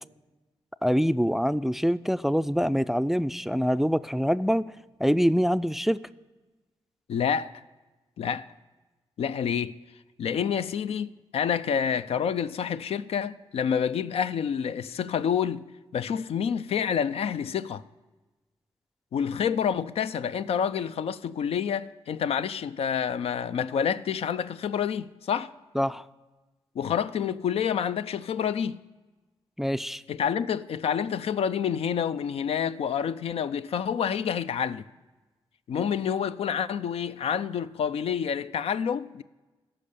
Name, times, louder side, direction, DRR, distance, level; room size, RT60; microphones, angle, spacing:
voice 1, 0.8-4.7 5.0-6.0 25.8-26.0 29.6-30.0, equal, 5° right, 0.3 m, -25 dB
voice 2, 7.1-7.5 8.2-8.5 9.2-9.8 10.2-15.7 15.9-17.8 19.1-25.5 26.8-28.8 30.1-34.9 35.7-39.2, left 8 dB, 75° left, 0.4 m, -28 dB
14.0 x 5.5 x 6.7 m
cardioid pair, 60°, 10 cm